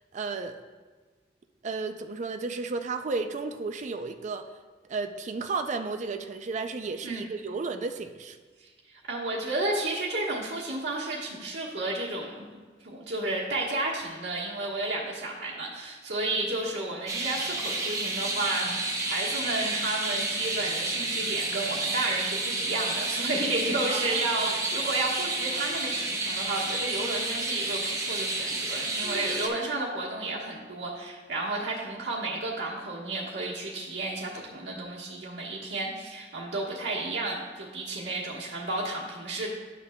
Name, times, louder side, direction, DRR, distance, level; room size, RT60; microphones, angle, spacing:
voice 1, 0.1-0.6 1.6-4.4 4.9-8.4 23.9-24.4, right 4 dB, 45° right, 7 dB, 0.4 m, -33 dB
voice 2, 8.6-12.5 12.8-24.5 24.7-39.5, right 2 dB, 85° right, -5 dB, 1.3 m, -32 dB
sound 1, 17.1-29.5, right 2 dB, 20° right, 0.7 m, -30 dB
11.0 x 5.9 x 2.2 m, 1.4 s
head